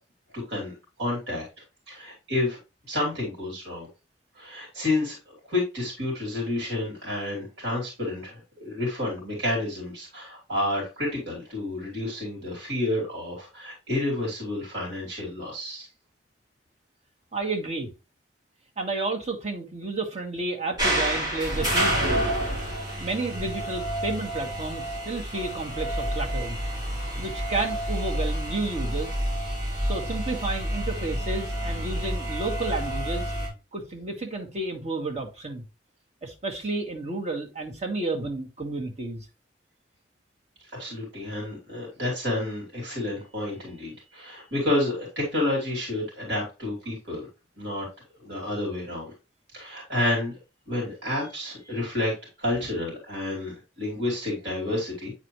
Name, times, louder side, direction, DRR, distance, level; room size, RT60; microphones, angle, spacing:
voice 1, 1.0-1.5 1.9-2.6 2.9-3.9 4.3-15.9 40.7-47.3 47.6-47.9 48.2-49.1 49.5-50.3 50.7-55.1, left 1 dB, 75° right, 3.0 m, -30 dB
voice 2, 17.3-17.9 18.8-22.3 23.0-26.6 27.2-29.1 29.8-33.3 33.7-35.6 36.2-39.3, right 2 dB, 40° right, 1.5 m, -31 dB
sound 1, 20.8-33.5, right 1 dB, 20° right, 4.1 m, -29 dB
8.7 x 4.2 x 3.1 m
head